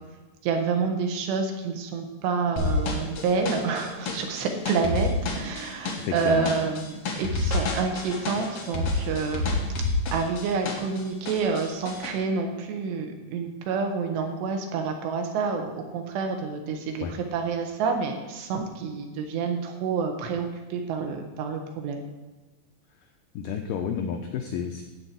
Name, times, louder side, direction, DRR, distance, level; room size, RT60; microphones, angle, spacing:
voice 1, 0.4-9.5 10.1-22.0, right 5 dB, 80° right, 4 dB, 3.4 m, -28 dB
sound 1, 2.6-11.0 11.2-12.1, left 2 dB, 55° left, 1.7 m, -28 dB
voice 2, 6.0-6.5 17.0-17.1 23.3-24.8, left 7 dB, 90° left, 4 dB, 1.9 m, -30 dB
12.5 x 4.6 x 8.2 m, 1.2 s
omnidirectional pair, 4.9 m